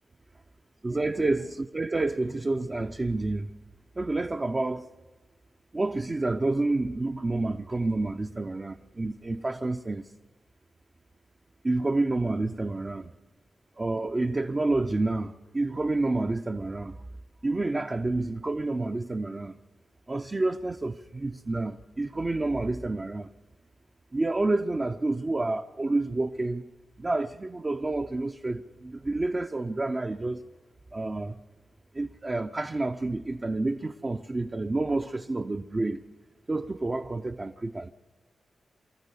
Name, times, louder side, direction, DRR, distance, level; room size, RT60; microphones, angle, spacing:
voice 1, 0.8-3.5 4.0-4.9 5.7-10.1 11.6-13.1 13.8-17.0 17.4-19.5 20.1-23.3 24.1-26.7 27.0-30.4 30.9-31.4 31.9-36.0 36.5-37.9, right 2 dB, 30° right, 0.6 m, -29 dB
24.5 x 13.5 x 8.3 m
cardioid pair, 85°, 0 cm